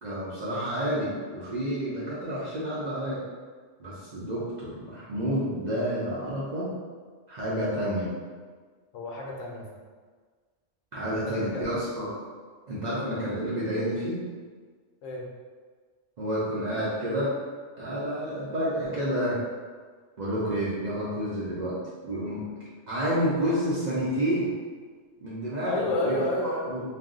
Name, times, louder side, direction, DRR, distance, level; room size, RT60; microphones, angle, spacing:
voice 1, 0.0-3.2 3.8-6.7 7.3-8.1 10.9-12.1 12.7-14.2 16.2-17.3 17.8-19.4 20.2-21.8 22.0-22.4 22.9-24.5 25.2-26.2 26.7-26.8, equal, 50° right, -9 dB, 0.5 m, -29 dB
voice 2, 8.9-9.6 11.3-11.7 15.0-15.2 25.7-26.7, left 1 dB, 80° left, -1 dB, 0.9 m, -30 dB
2.5 x 2.0 x 3.6 m, 1.5 s
omnidirectional pair, 1.3 m